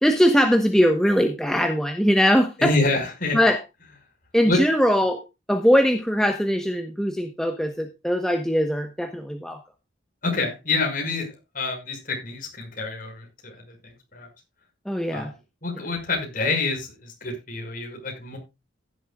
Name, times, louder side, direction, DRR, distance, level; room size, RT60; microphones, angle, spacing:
voice 1, 0.0-2.7 3.3-3.6 4.3-5.2 5.5-9.6 14.9-15.3, equal, 5° left, 5 dB, 1.0 m, -21 dB
voice 2, 2.6-3.4 4.4-4.6 10.2-14.3 15.1-15.3 15.6-18.4, left 3 dB, 45° left, 2 dB, 5.9 m, -27 dB
15.5 x 11.0 x 2.4 m, 0.25 s
head